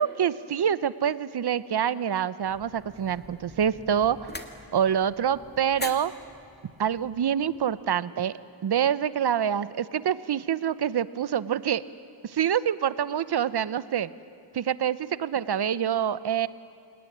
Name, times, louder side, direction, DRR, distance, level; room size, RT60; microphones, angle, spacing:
voice 1, 0.0-4.3 4.7-6.1 6.8-8.3 8.6-11.8 12.2-14.1 14.5-16.5, right 9 dB, 55° right, 15 dB, 0.9 m, -26 dB
sound 1, 2.4-7.8, left 2 dB, 20° left, 2.1 m, -44 dB
28.5 x 18.5 x 10.0 m, 2.4 s
cardioid pair, 75°, 47 cm